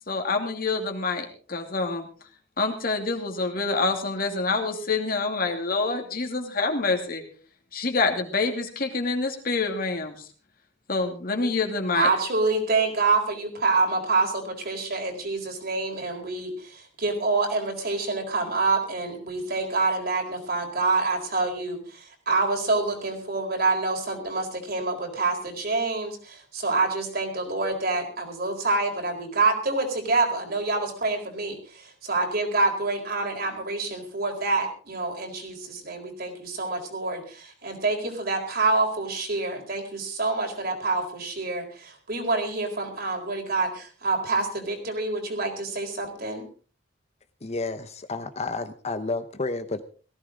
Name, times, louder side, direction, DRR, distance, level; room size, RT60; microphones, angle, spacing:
voice 1, 0.1-2.1 2.6-7.2 7.7-10.3 10.9-12.1, left 3 dB, 50° left, 4 dB, 2.7 m, -27 dB
voice 2, 11.9-46.4, right 3 dB, 55° right, 3 dB, 4.3 m, -27 dB
voice 3, 47.4-49.8, left 3 dB, 35° left, 10 dB, 0.8 m, -31 dB
18.0 x 15.5 x 3.8 m, 0.39 s
head